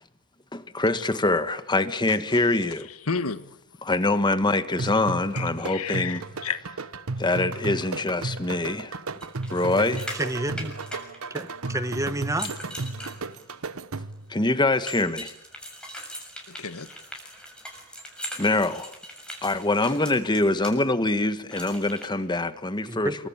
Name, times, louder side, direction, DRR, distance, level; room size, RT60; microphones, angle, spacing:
voice 1, 0.5-2.9 3.8-6.2 7.2-9.0 9.5-10.1 11.7-11.8 14.3-15.3 18.4-18.9 19.4-23.3, left 2 dB, 20° left, 1.4 m, -24 dB
voice 2, 3.1-3.5 5.3-6.6 16.5-16.9, left 5 dB, 85° left, 1.5 m, -31 dB
sound 1, 4.8-14.3, right 3 dB, 70° right, 1.1 m, -34 dB
sound 2, 9.2-11.7 12.2-13.7 14.9-20.7 21.5-22.1, equal, 5° left, 7.0 m, -40 dB
voice 3, 10.1-10.8 11.3-12.5 22.8-23.3, right 1 dB, 15° right, 1.4 m, -30 dB
28.0 x 24.5 x 8.9 m
head